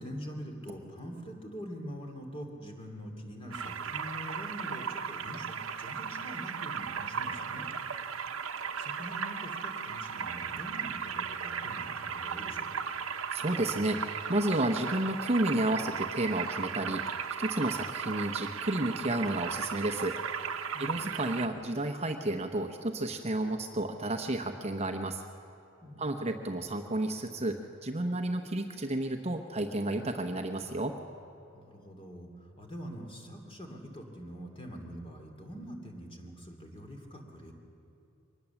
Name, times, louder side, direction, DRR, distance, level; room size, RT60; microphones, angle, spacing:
voice 1, 0.0-7.7 8.8-12.8 20.7-20.9 25.8-26.4 31.5-32.3 32.6-37.5, equal, 25° left, 2 dB, 2.8 m, -44 dB
sound 1, 3.5-21.5, right 6 dB, 80° right, 1.0 m, -36 dB
voice 2, 13.3-20.2 20.8-25.2 26.0-30.9, right 1 dB, 30° right, 5 dB, 0.9 m, -31 dB
24.0 x 20.0 x 7.1 m, 2.8 s
head